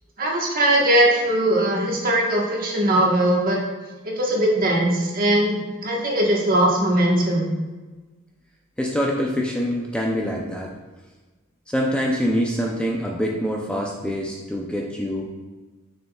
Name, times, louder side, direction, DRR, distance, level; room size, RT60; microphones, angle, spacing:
voice 1, 0.2-3.6 4.0-7.5, right 1 dB, 40° right, -2 dB, 1.3 m, -20 dB
voice 2, 8.8-10.7 11.7-15.3, equal, 5° left, -2 dB, 0.5 m, -25 dB
6.6 x 6.5 x 2.3 m, 1.3 s
head